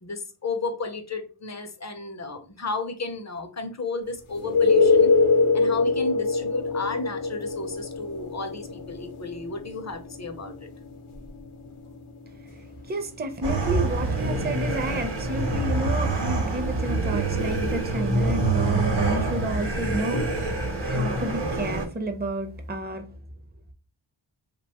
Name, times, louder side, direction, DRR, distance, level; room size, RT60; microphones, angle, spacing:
voice 1, 0.0-5.1 5.5-10.7, left 3 dB, 35° left, 0.5 m, -33 dB
sound 1, 4.3-15.9 20.1-20.2, left 4 dB, 80° left, 0.6 m, -26 dB
voice 2, 12.9-23.0, right 2 dB, 20° right, 0.5 m, -31 dB
sound 2, 13.4-21.9, right 2 dB, 55° right, 0.8 m, -26 dB
2.8 x 2.2 x 2.8 m
wide cardioid pair, 40°, 49 cm